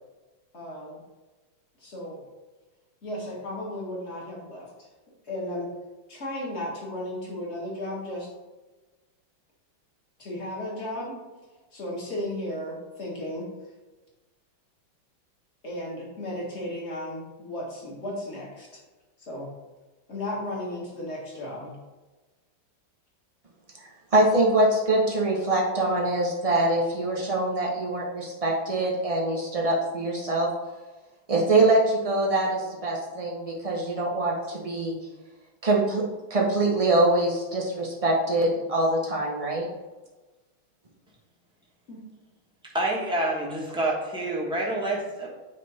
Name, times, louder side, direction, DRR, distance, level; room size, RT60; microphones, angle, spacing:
voice 1, 0.5-1.0 1.8-2.2 3.0-4.7 5.3-5.7 6.1-8.3 10.2-11.1 11.7-13.5 15.6-18.7 19.3-19.5 20.1-21.8 41.9-42.0, left 1 dB, 35° left, -4 dB, 1.8 m, -34 dB
voice 2, 24.1-30.5 31.3-35.0 35.6-36.0 36.3-39.7, right 2 dB, 45° right, -3 dB, 0.4 m, -24 dB
voice 3, 42.7-45.3, right 1 dB, 5° right, -4 dB, 0.8 m, -27 dB
9.1 x 3.2 x 4.2 m, 1.2 s
omnidirectional pair, 2.3 m